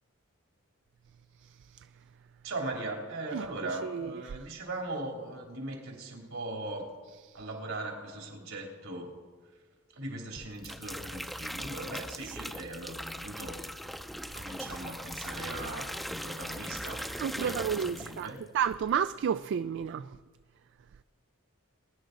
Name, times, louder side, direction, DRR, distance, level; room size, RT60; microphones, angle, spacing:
voice 1, 2.4-6.9 7.3-9.2 9.9-13.6 14.3-18.4, right 2 dB, 80° right, 3.1 m, -39 dB
voice 2, 3.8-4.5 7.3-7.4 12.2-12.4 17.2-20.1, right 8 dB, 60° right, 0.3 m, -32 dB
sound 1, 10.4-18.4 18.7-19.0, equal, ahead, 0.5 m, -40 dB
22.5 x 10.5 x 3.9 m
head